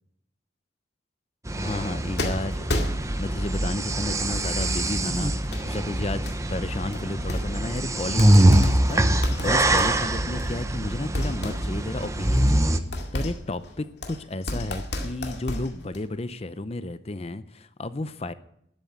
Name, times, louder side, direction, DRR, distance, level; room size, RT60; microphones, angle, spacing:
sound 1, 1.5-12.8, right 1 dB, 15° right, 0.8 m, -23 dB
voice 1, 1.6-2.8 3.2-5.3 5.6-12.8 13.1-18.3, left 2 dB, 30° left, 13 dB, 0.6 m, -32 dB
sound 2, 2.2-3.4 4.1-4.8 5.4-5.6 6.3-6.4 6.9-7.8 8.1-10.7 11.1-16.1, left 1 dB, 60° left, 2.2 m, -32 dB
13.0 x 7.5 x 9.5 m, 0.73 s
head